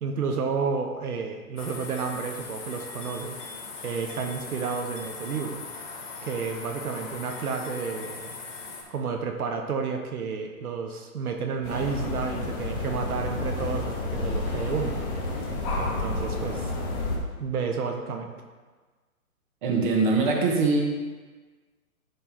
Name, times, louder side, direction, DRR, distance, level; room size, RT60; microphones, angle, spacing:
voice 1, 0.0-3.4 3.8-5.6 6.2-8.4 8.9-15.0 15.8-16.8 17.4-18.3, right 5 dB, 80° right, 3 dB, 1.1 m, -31 dB
sound 1, 1.6-8.8, left 4 dB, 60° left, 2.2 m, -40 dB
sound 2, 11.6-17.2, left 2 dB, 30° left, 1.6 m, -30 dB
voice 2, 19.6-20.8, right 3 dB, 35° right, -1 dB, 1.4 m, -22 dB
10.5 x 3.6 x 4.6 m, 1.4 s
hypercardioid pair, 155°, 44 cm